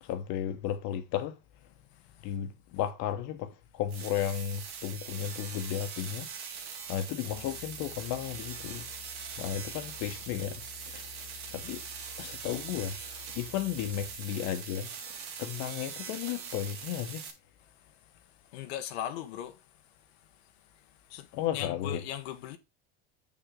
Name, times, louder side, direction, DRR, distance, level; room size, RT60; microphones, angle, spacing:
voice 1, 0.0-1.4 2.2-6.3 6.9-8.9 9.4-11.1 11.5-11.8 12.2-13.0 13.3-17.3 21.3-22.0, left 10 dB, 65° left, 1.5 m, -34 dB
sound 1, 3.9-17.3, right 6 dB, 80° right, 2.5 m, -42 dB
voice 2, 7.2-7.6 18.5-19.6 21.1-21.3 21.5-22.6, left 11 dB, 80° left, 1.4 m, -38 dB
sound 2, 7.3-14.2, left 17 dB, 20° left, 1.9 m, -52 dB
7.7 x 7.3 x 3.9 m
supercardioid pair, 100°, 31 cm